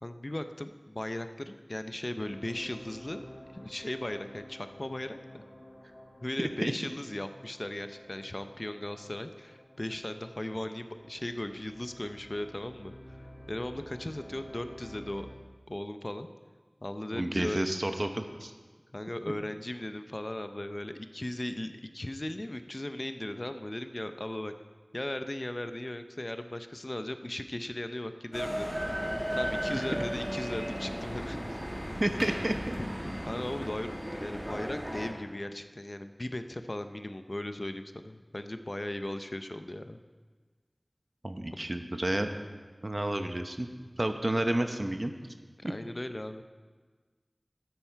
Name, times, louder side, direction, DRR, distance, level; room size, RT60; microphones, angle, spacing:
voice 1, 0.0-3.2 3.5-5.4 6.2-13.2 13.5-15.3 15.7-16.3 16.8-17.6 18.9-24.5 24.9-28.8 29.3-31.6 33.2-40.0 45.6-46.4, left 1 dB, 45° left, 9 dB, 0.5 m, -37 dB
sound 1, 2.2-15.2, left 1 dB, 90° left, 2.1 m, -51 dB
voice 2, 6.4-6.7 17.1-18.5 29.7-30.0 32.0-32.8 41.2-42.3 42.8-43.7 44.0-45.1 45.6-45.7, right 1 dB, 45° right, 7 dB, 0.8 m, -30 dB
sound 2, 28.3-35.1, equal, 15° right, 1.9 m, -35 dB
13.0 x 9.2 x 4.5 m, 1.4 s
wide cardioid pair, 45°, 0 cm